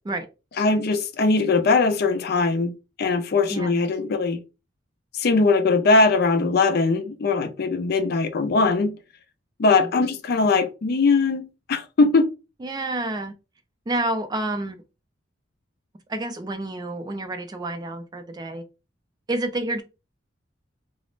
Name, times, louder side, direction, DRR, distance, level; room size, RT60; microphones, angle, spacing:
voice 1, 0.6-2.7 3.0-4.4 5.2-8.9 9.6-12.3, left 3 dB, 55° left, 0.4 m, -20 dB
voice 2, 12.6-13.3 13.9-14.8 16.1-18.6 19.3-19.8, right 2 dB, 20° right, 0.3 m, -29 dB
2.4 x 2.0 x 3.0 m
head